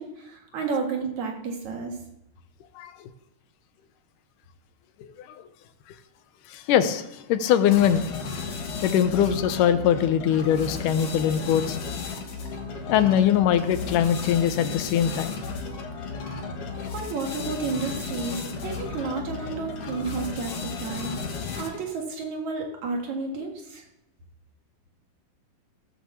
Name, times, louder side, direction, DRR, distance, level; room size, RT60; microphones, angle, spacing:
voice 1, 0.0-1.9 16.9-23.8, right 4 dB, 65° right, 3.1 m, -32 dB
voice 2, 6.5-8.1 8.8-11.8 12.9-15.4, left 9 dB, 85° left, 2.4 m, -22 dB
sound 1, 7.7-21.9, left 4 dB, 55° left, 2.4 m, -34 dB
16.5 x 6.1 x 7.0 m
omnidirectional pair, 3.7 m